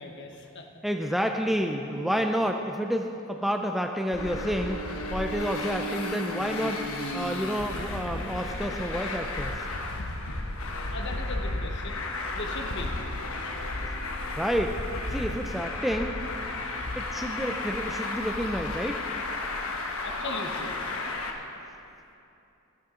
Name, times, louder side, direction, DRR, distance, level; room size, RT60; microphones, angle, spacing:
voice 1, 0.0-0.7 10.7-12.0 12.3-12.9 19.8-20.8, left 2 dB, 55° left, 4 dB, 1.0 m, -39 dB
voice 2, 0.8-4.8 5.1-6.8 7.1-9.6 14.4-14.8 15.1-16.2 16.9-19.0, equal, ahead, 4 dB, 0.4 m, -29 dB
Traffic noise roadway noise, 4.1-21.3, left 2 dB, 75° left, 1.1 m, -33 dB
15.5 x 11.5 x 3.7 m, 2.8 s
head